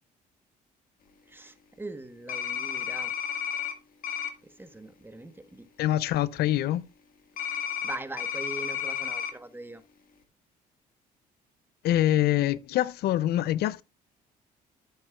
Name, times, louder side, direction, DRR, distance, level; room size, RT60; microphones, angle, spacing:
voice 1, 1.3-3.1 4.6-5.7 7.8-9.8, right 2 dB, 10° right, 1.2 m, -41 dB
sound 1, 2.3-3.7 4.0-4.3 7.4-9.3, left 8 dB, 55° left, 1.7 m, -32 dB
voice 2, 5.8-6.8 11.8-13.8, left 13 dB, 70° left, 0.5 m, -25 dB
10.5 x 8.8 x 2.4 m
cardioid pair, 85°, 17 cm